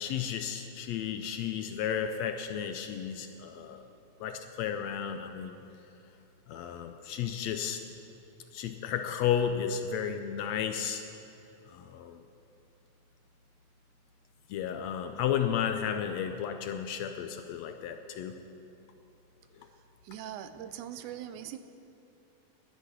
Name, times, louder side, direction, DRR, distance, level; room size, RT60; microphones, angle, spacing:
voice 1, 0.0-3.8 4.2-5.6 6.5-7.8 8.5-11.0 11.7-12.2 14.5-18.4, left 8 dB, 75° left, 7 dB, 1.7 m, -33 dB
voice 2, 20.0-21.6, right 10 dB, 85° right, 11 dB, 2.2 m, -41 dB
10.5 x 10.5 x 9.8 m, 2.8 s
omnidirectional pair, 3.5 m